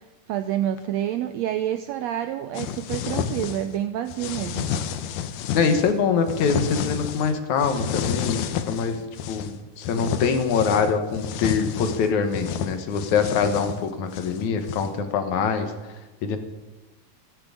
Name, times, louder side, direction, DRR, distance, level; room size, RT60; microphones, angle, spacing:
voice 1, 0.3-4.7, right 11 dB, 85° right, 10 dB, 1.5 m, -28 dB
sound 1, 2.5-3.8 4.1-5.9 6.3-7.3 7.6-9.5 9.8-15.0, left 8 dB, 90° left, 2.4 m, -30 dB
voice 2, 5.5-15.7 16.2-16.4, left 5 dB, 70° left, 7 dB, 2.5 m, -24 dB
14.0 x 9.8 x 8.4 m, 1.2 s
omnidirectional pair, 3.6 m